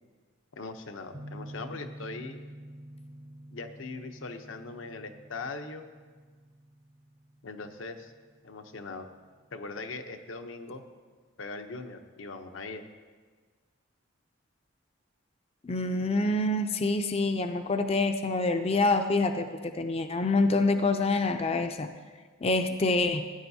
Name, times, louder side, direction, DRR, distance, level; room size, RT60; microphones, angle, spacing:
voice 1, 0.6-2.4 3.5-5.9 7.4-8.1 8.4-9.1 9.5-10.8 11.4-12.9, left 3 dB, 75° left, 7 dB, 0.8 m, -40 dB
sound 1, 1.1-9.8, right 1 dB, 90° right, 3.8 m, -48 dB
voice 2, 15.6-21.9 22.4-23.2, left 2 dB, 30° left, 7 dB, 0.4 m, -26 dB
17.0 x 9.7 x 2.7 m, 1.5 s
head